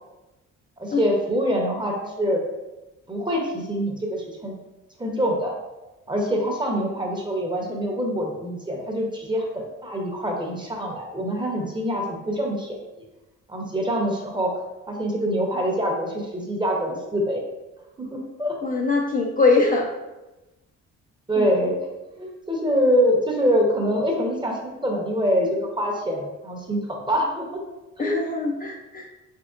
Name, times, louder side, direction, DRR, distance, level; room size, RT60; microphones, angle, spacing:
voice 1, 0.8-2.4 3.1-4.5 5.0-5.5 6.1-12.8 13.5-14.5 14.9-17.4 18.0-18.6 21.3-21.8 22.2-27.6 28.0-28.2, equal, 15° right, 0 dB, 0.8 m, -25 dB
voice 2, 18.6-19.9 21.4-21.5 28.0-29.1, left 3 dB, 30° left, -1 dB, 0.5 m, -22 dB
3.6 x 3.4 x 2.4 m, 1.0 s
cardioid pair, 90°, 30 cm